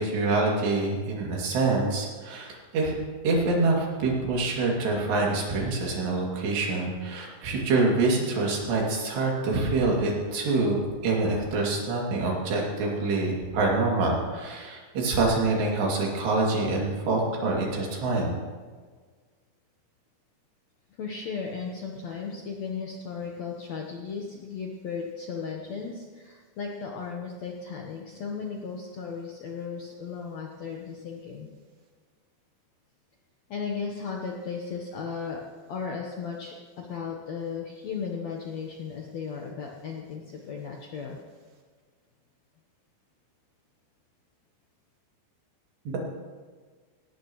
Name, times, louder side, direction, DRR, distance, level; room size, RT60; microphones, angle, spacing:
voice 1, 0.0-3.0 3.2-18.3, right 3 dB, 85° right, -2 dB, 4.9 m, -26 dB
voice 2, 21.0-31.5 33.5-35.4 35.7-41.2, left 5 dB, 70° left, 0 dB, 1.7 m, -35 dB
18.0 x 17.5 x 3.1 m, 1.5 s
omnidirectional pair, 4.7 m